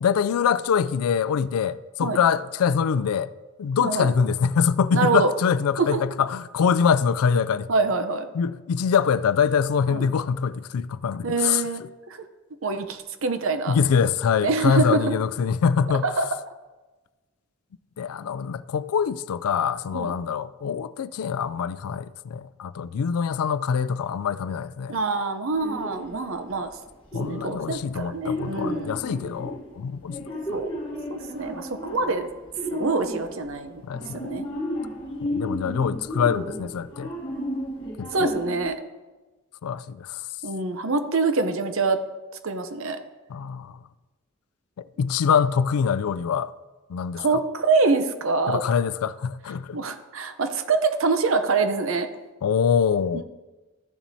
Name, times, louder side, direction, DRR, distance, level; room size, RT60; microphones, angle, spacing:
voice 1, 0.0-3.3 3.6-7.7 8.3-11.6 13.7-16.0 18.0-25.0 27.1-30.2 30.5-30.6 33.8-34.2 35.3-37.1 38.0-38.3 39.6-40.2 43.3-43.8 45.0-46.5 46.9-47.2 48.5-49.8 52.4-53.2, left 7 dB, 80° left, 0.3 m, -24 dB
voice 2, 3.8-4.1 4.9-5.3 5.8-6.0 7.7-8.3 9.9-10.1 11.2-11.8 12.1-12.2 12.6-13.8 14.4-15.1 16.0-16.2 19.9-20.1 24.9-26.7 27.2-29.2 30.5-30.7 31.1-32.3 32.7-33.8 34.2-34.5 38.1-38.8 40.4-42.0 42.4-43.0 47.2-48.6 49.7-52.1 53.1-53.2, right 4 dB, 65° right, 0.7 m, -25 dB
sound 1, 25.5-26.6 27.1-33.7 33.9-38.7, left 1 dB, 20° left, 1.3 m, -33 dB
13.5 x 7.2 x 2.7 m
head